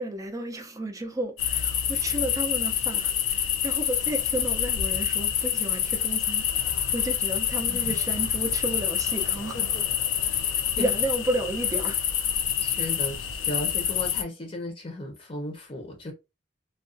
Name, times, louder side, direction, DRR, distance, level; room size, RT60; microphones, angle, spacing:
voice 1, 0.0-9.6 10.5-12.1, right 1 dB, 20° right, 0.5 m, -32 dB
sound 1, 1.4-14.2, left 9 dB, 80° left, 0.4 m, -27 dB
voice 2, 9.5-9.8 10.3-10.4 10.8-10.9 12.6-16.1, left 1 dB, 30° left, 0.7 m, -36 dB
2.4 x 2.2 x 2.5 m
head